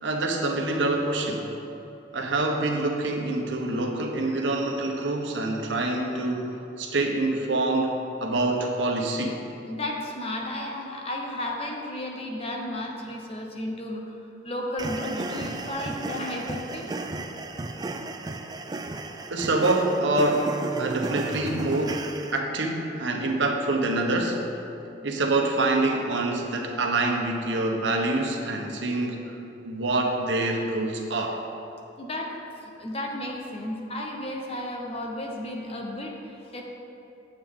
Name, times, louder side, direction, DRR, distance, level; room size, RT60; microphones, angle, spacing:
voice 1, 0.0-1.5 2.1-7.9 8.2-9.4 19.3-20.5 20.8-22.0 22.3-24.4 25.0-29.4 29.6-31.4, right 2 dB, 90° right, 2 dB, 1.0 m, -26 dB
voice 2, 9.7-14.1 14.4-16.9 32.0-32.3 32.6-36.6, left 1 dB, 35° left, 0 dB, 1.0 m, -33 dB
sound 1, 14.8-22.4, right 2 dB, 20° right, 0.4 m, -34 dB
9.0 x 7.5 x 3.7 m, 2.8 s
head